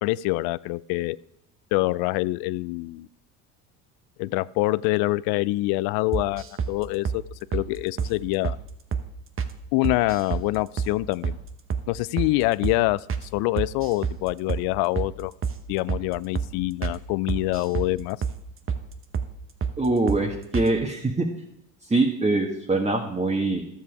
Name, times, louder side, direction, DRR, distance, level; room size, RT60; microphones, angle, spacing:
voice 1, 0.0-1.2 1.7-3.1 4.2-7.2 7.5-8.6 9.7-11.4 11.9-15.3 15.7-18.2, left 19 dB, 65° left, 20 dB, 0.5 m, -25 dB
sound 1, 6.1-6.7 7.1-7.2 7.5-7.7 8.0-8.1 8.4-8.6 8.9-9.1 9.4-9.5 9.8-10.5 10.8-10.9 11.2-11.4 11.7-11.9 12.2-12.3 12.6-12.8 13.1-13.3 13.6-14.2 14.5-14.7 15.0-15.1 15.4-15.6 15.9-16.1 16.4-16.5 16.8-17.0 17.3-17.9 18.2-18.4 18.7-18.8 19.1-19.3 19.6-19.8 20.1-20.2 20.5-20.7, right 6 dB, 30° right, 1.1 m, -28 dB
voice 2, 19.8-21.3 21.9-23.6, right 2 dB, 15° right, -1 dB, 1.6 m, -23 dB
12.0 x 7.5 x 4.8 m, 0.77 s
supercardioid pair, 80°, 40 cm